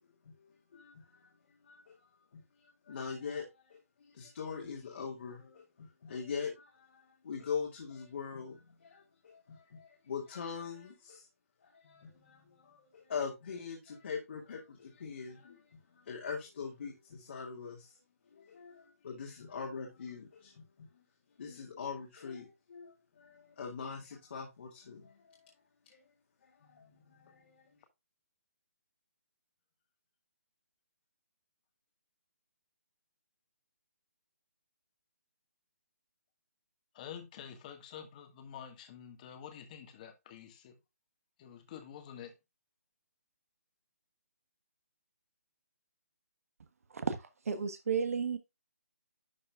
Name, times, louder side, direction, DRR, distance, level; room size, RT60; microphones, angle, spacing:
voice 1, 0.7-1.3 1.6-1.9 2.3-2.4 2.8-11.3 11.6-15.6 15.9-17.9 18.3-20.9 21.4-25.5 25.9-26.0 26.4-27.7, left 6 dB, 55° left, 2.2 m, -42 dB
voice 2, 36.9-40.7 41.4-42.3, left 8 dB, 30° left, 1.6 m, -48 dB
voice 3, 46.9-48.4, right 6 dB, 65° right, 1.3 m, -33 dB
11.5 x 5.0 x 2.4 m
hypercardioid pair, 155°, 8 cm